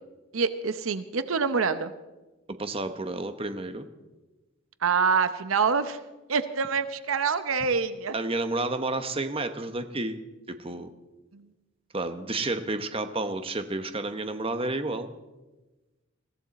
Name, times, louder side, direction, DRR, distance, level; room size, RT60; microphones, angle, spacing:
voice 1, 0.3-1.9 4.8-6.0 6.3-8.1 11.3-11.5, right 5 dB, 75° right, 11 dB, 0.8 m, -26 dB
voice 2, 2.5-3.9 8.1-10.2 10.5-10.9 11.9-15.1, right 2 dB, 25° right, 8 dB, 0.9 m, -31 dB
22.0 x 15.0 x 4.2 m, 1.1 s
head